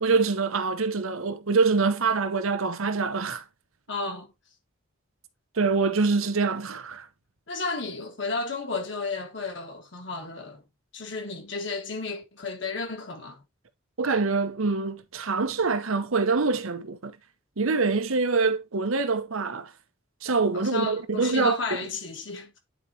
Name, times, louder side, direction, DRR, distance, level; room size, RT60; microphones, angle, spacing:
voice 1, 0.0-3.4 5.6-7.1 14.0-17.1 17.6-19.7 20.2-21.6, right 4 dB, 80° right, 0.9 m, -25 dB
voice 2, 3.9-4.3 7.5-10.6 10.9-13.4 20.5-22.5, left 3 dB, 55° left, 1.6 m, -33 dB
9.3 x 4.4 x 2.8 m
head